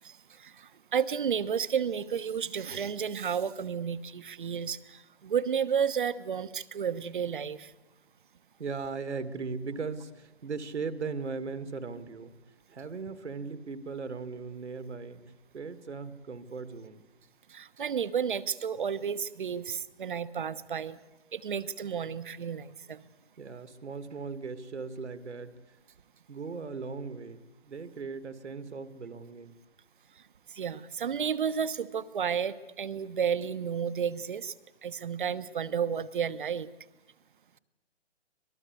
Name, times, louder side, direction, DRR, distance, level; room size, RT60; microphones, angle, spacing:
voice 1, 0.0-7.7 17.5-21.0 21.3-23.0 30.5-34.5 34.8-36.7, right 7 dB, 45° right, 15 dB, 1.1 m, -32 dB
voice 2, 8.6-12.4 12.7-15.2 15.5-17.0 23.4-25.6 26.3-29.5, right 4 dB, 80° right, 11 dB, 2.2 m, -38 dB
25.5 x 19.5 x 8.3 m, 1.0 s
hypercardioid pair, 165°, 34 cm